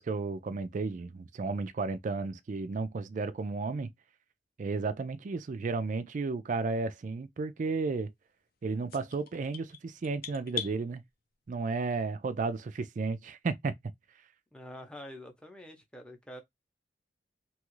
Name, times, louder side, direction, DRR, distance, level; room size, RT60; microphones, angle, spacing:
voice 1, 0.0-3.9 4.6-8.1 8.6-11.0 11.5-13.7, right 4 dB, 45° right, 0.3 m, -33 dB
sound 1, 8.9-10.8, left 9 dB, 55° left, 0.5 m, -40 dB
voice 2, 14.5-16.4, equal, 5° left, 0.7 m, -46 dB
2.9 x 2.4 x 3.0 m
head